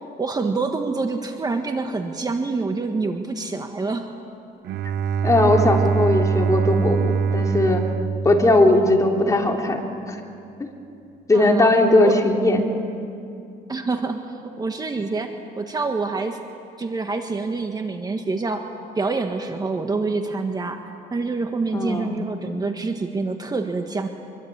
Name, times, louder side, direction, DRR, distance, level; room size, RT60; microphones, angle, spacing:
voice 1, 0.2-4.1 11.3-11.7 12.0-12.2 13.7-14.2 14.6-16.4 16.8-18.7 18.9-20.8 21.1-24.1, right 3 dB, 25° right, 5 dB, 1.6 m, -26 dB
Bowed string instrument, 4.6-9.3, right 6 dB, 75° right, 0.8 m, -23 dB
voice 2, 5.2-7.8 8.2-10.2 11.3-12.7 21.7-22.2, left 2 dB, 20° left, 1 dB, 3.5 m, -18 dB
25.0 x 24.0 x 8.8 m, 2.6 s
cardioid pair, 110°, 17 cm